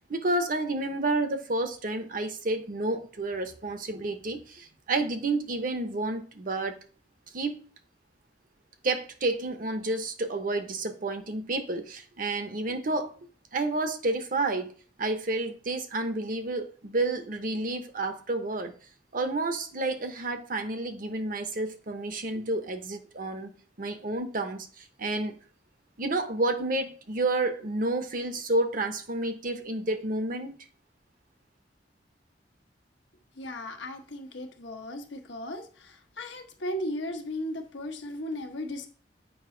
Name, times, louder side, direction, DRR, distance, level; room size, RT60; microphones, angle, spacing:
voice 1, 0.1-6.8 7.3-7.6 8.8-13.1 13.5-14.7 15.0-18.7 19.1-25.4 26.0-30.5, right 2 dB, 50° right, 0.8 m, -30 dB
voice 2, 33.4-38.9, left 1 dB, 80° left, 1.1 m, -36 dB
7.1 x 5.2 x 3.8 m
head